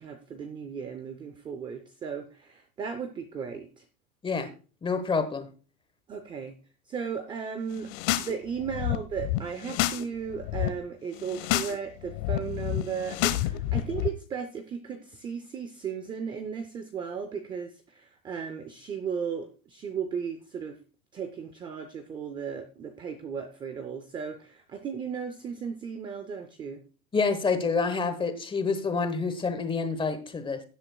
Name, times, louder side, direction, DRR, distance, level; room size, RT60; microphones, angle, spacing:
voice 1, 0.0-3.8 6.1-6.5 6.9-20.8 21.1-26.8, right 6 dB, 10° right, 9 dB, 0.4 m, -36 dB
voice 2, 4.8-5.5 27.1-30.6, left 4 dB, 10° left, 9 dB, 1.1 m, -27 dB
sound 1, 7.8-8.3 8.6-10.0 10.3-10.7 11.2-11.7 12.0-14.1, left 14 dB, 50° left, 1.0 m, -29 dB
16.5 x 7.6 x 2.3 m, 0.35 s
supercardioid pair, 145°, 43 cm